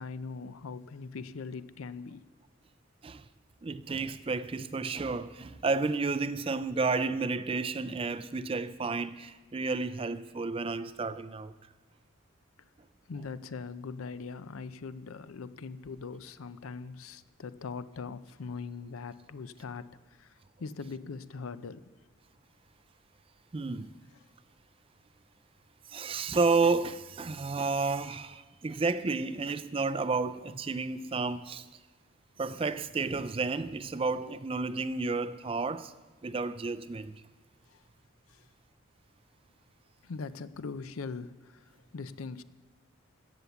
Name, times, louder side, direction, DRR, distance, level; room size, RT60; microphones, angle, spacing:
voice 1, 0.0-2.2 13.1-21.8 37.7-37.8 38.3-38.5 40.0-42.4, left 4 dB, 85° left, 0.5 m, -41 dB
voice 2, 3.6-11.5 23.5-23.9 25.9-31.7 32.4-35.9 36.2-37.2, right 4 dB, 25° right, 0.3 m, -31 dB
16.0 x 7.0 x 7.1 m
head